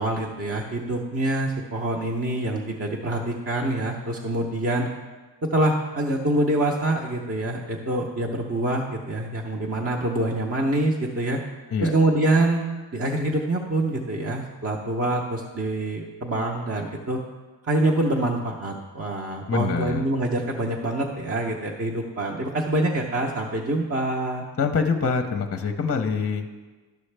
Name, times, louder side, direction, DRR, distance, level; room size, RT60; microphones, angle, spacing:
voice 1, 0.0-4.9 5.4-11.4 11.8-12.6 12.9-17.2 17.7-24.5, right 2 dB, 30° right, -1 dB, 0.8 m, -25 dB
voice 2, 19.5-20.0 24.6-26.5, left 5 dB, 30° left, 6 dB, 0.6 m, -25 dB
11.5 x 6.2 x 3.3 m, 1.3 s
cardioid pair, 75°, 45 cm